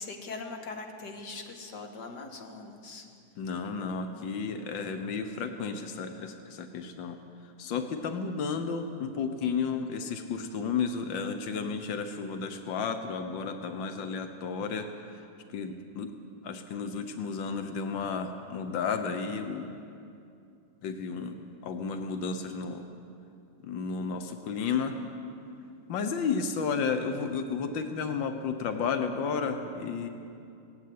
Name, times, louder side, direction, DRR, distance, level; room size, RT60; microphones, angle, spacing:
voice 1, 0.0-3.1, left 3 dB, 40° left, 4 dB, 1.8 m, -41 dB
voice 2, 3.4-7.2 7.6-15.2 15.5-16.1 16.4-19.7 20.8-22.9 23.6-25.0 25.9-30.1, left 5 dB, 90° left, 7 dB, 1.0 m, -32 dB
18.0 x 16.0 x 9.5 m, 2.5 s
omnidirectional pair, 3.7 m